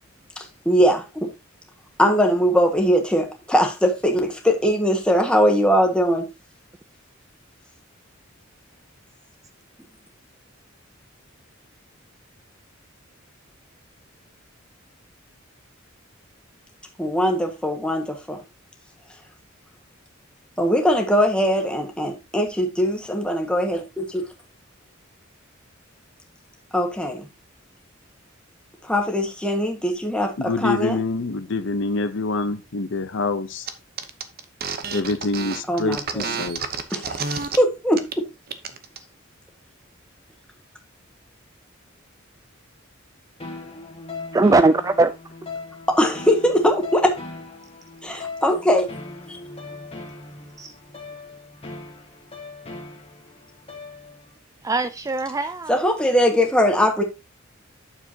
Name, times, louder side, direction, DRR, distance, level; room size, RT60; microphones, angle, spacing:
voice 1, 0.4-1.3 2.0-6.3 17.0-18.4 20.6-24.2 26.7-27.3 28.8-31.0 35.7-36.3 36.9-38.2 45.9-47.2 48.0-48.9 49.3-49.4 55.7-57.0, equal, 5° left, 1.6 m, -21 dB
voice 2, 30.4-33.7 34.9-36.6, left 3 dB, 65° left, 0.8 m, -26 dB
sound 1, 33.7-33.8 34.0-37.6 37.9-38.2 38.5-39.0, right 5 dB, 50° right, 0.9 m, -30 dB
sound 2, 43.4-54.4, left 3 dB, 30° left, 1.7 m, -39 dB
voice 3, 44.3-45.1 50.6-50.7 54.6-55.8, right 3 dB, 15° right, 0.3 m, -19 dB
8.8 x 7.0 x 2.8 m
head